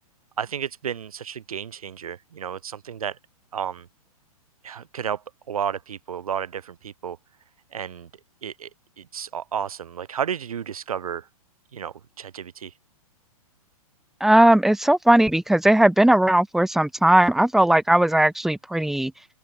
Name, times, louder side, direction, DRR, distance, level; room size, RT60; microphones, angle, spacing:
voice 1, 0.4-3.2 3.5-3.9 4.6-7.2 7.7-8.1 8.4-8.7 9.0-11.3 11.7-12.7, right 8 dB, 70° right, 2.6 m, -32 dB
voice 2, 14.2-19.1, right 1 dB, ahead, 1.0 m, -18 dB
open air
figure-of-eight pair, 115°, 19 cm